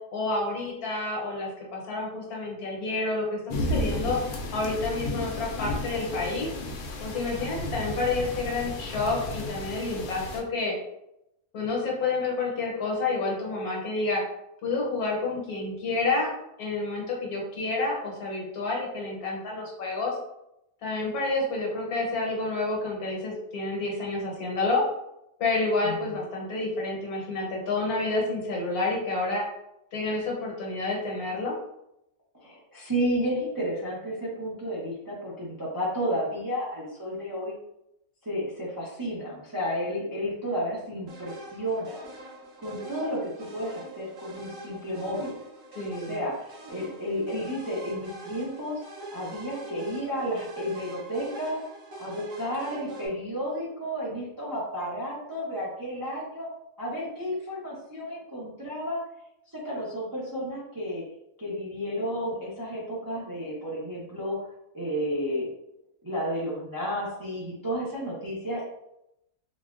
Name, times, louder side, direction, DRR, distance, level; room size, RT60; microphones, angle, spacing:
voice 1, 0.1-4.2 4.5-6.5 7.0-10.8 11.5-14.2 14.6-16.3 16.6-20.2 20.8-24.8 25.4-29.4 29.9-31.5 45.7-46.2, left 3 dB, 75° left, -2 dB, 1.3 m, -29 dB
sound 1, 3.5-10.4, left 1 dB, 90° left, 1.1 m, -33 dB
voice 2, 32.3-37.5 38.2-42.0 42.6-45.4 46.0-48.8 49.1-51.7 52.0-56.5 56.8-59.0 59.5-61.1 61.4-64.4 64.7-65.5 66.0-68.6, equal, 25° right, -7 dB, 0.4 m, -32 dB
sound 2, 41.1-53.1, right 1 dB, 70° right, 1.3 m, -44 dB
4.0 x 2.2 x 2.4 m, 0.83 s
omnidirectional pair, 1.7 m